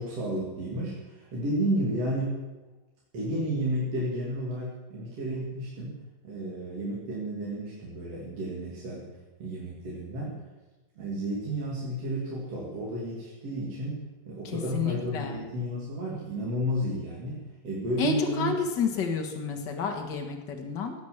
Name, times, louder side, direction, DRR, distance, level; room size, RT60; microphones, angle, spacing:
voice 1, 0.0-2.4 3.1-6.0 6.2-9.1 9.4-10.4 11.0-18.5, right 1 dB, 45° right, -5 dB, 3.6 m, -32 dB
voice 2, 14.5-15.4 18.0-20.9, left 5 dB, 40° left, 3 dB, 1.8 m, -30 dB
17.0 x 8.5 x 7.3 m, 1.1 s
omnidirectional pair, 4.0 m